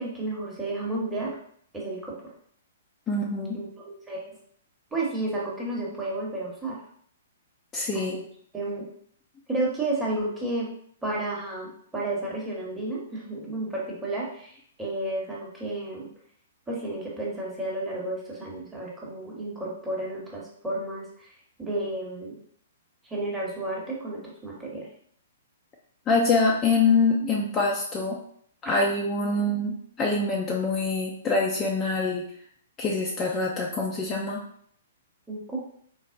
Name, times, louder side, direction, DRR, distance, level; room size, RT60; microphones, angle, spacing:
voice 1, 0.0-1.4 1.7-2.2 3.5-4.4 4.9-6.8 7.9-8.2 8.5-8.9 9.5-10.7 11.0-16.1 16.7-21.1 21.6-22.3 23.0-24.9 35.3-35.6, right 2 dB, 10° right, -4 dB, 0.9 m, -32 dB
voice 2, 3.1-3.6 7.7-8.1 26.1-28.2 28.6-32.2 32.8-34.4, left 3 dB, 20° left, -2 dB, 0.4 m, -25 dB
4.1 x 2.0 x 2.5 m, 0.63 s
figure-of-eight pair, 120°, 0 cm